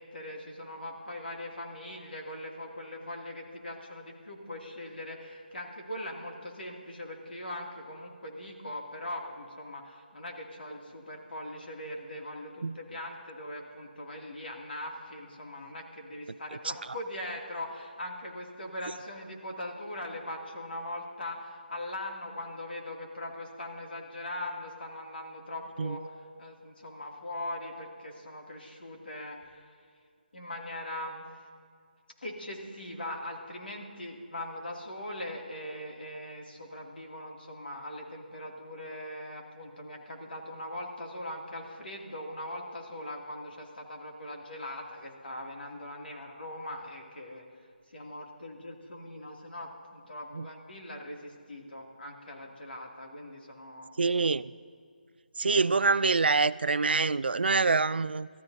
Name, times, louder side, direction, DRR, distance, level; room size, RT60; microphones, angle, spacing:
voice 1, 0.0-29.8 30.3-31.4 32.2-47.4 47.9-53.9, left 1 dB, 75° left, 2.5 m, -41 dB
voice 2, 54.0-54.5 55.4-58.3, right 4 dB, 85° right, 0.4 m, -25 dB
24.5 x 13.0 x 2.7 m
hypercardioid pair, 180°, 5 cm